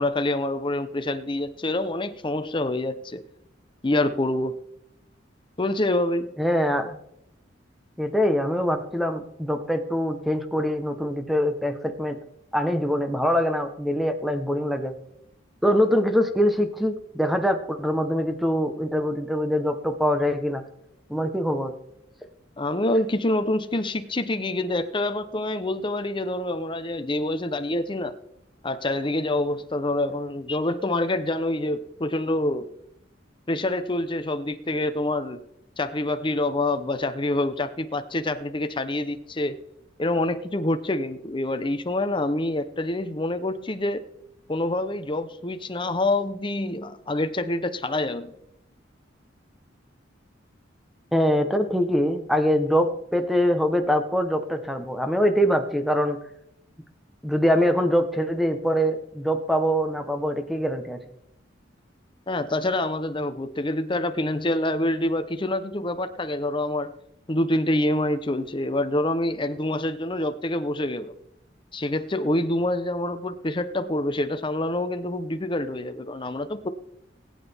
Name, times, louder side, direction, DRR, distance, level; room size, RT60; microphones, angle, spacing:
voice 1, 0.0-3.2 3.8-4.5 5.6-6.3 22.6-28.2 28.6-32.7 33.5-35.4 35.8-39.6 40.0-44.0 44.5-48.3 62.3-66.9 67.3-71.1 71.7-76.7, left 1 dB, 25° left, 10 dB, 0.7 m, -26 dB
voice 2, 6.4-7.0 8.0-12.2 12.5-14.9 15.6-20.6 21.1-21.7 51.1-56.2 57.2-61.0, equal, ahead, 7 dB, 1.0 m, -23 dB
19.5 x 9.0 x 3.5 m, 0.79 s
head